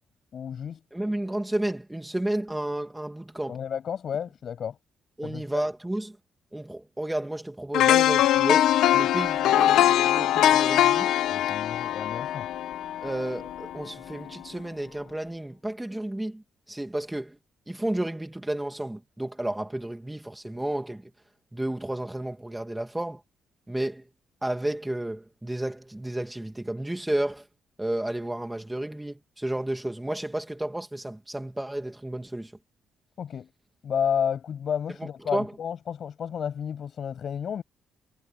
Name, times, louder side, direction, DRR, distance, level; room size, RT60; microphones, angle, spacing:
voice 1, 0.3-0.8 3.5-4.7 5.2-5.6 11.2-12.5 33.2-33.5 33.8-37.6, left 8 dB, 55° left, 7.6 m, -31 dB
voice 2, 0.9-3.6 5.2-6.2 6.5-11.1 13.0-17.4 17.7-21.0 21.5-23.2 23.7-24.0 24.4-27.4 27.8-32.5 35.0-35.5, right 1 dB, 10° right, 2.2 m, -32 dB
sound 1, 7.7-13.8 14.1-14.3, left 12 dB, 85° left, 1.4 m, -22 dB
cardioid pair, 90°, 0 cm